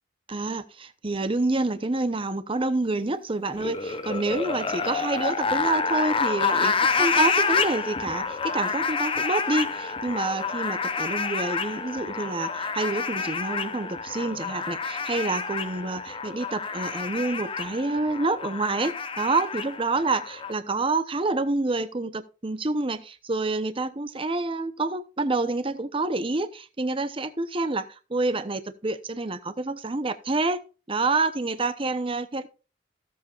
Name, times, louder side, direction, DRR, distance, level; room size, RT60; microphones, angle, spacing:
voice 1, 0.3-30.6 30.9-32.5, right 2 dB, 30° right, 0.8 m, -28 dB
sound 1, 3.5-20.5, left 5 dB, 25° left, 0.8 m, -28 dB
16.5 x 7.6 x 2.5 m
head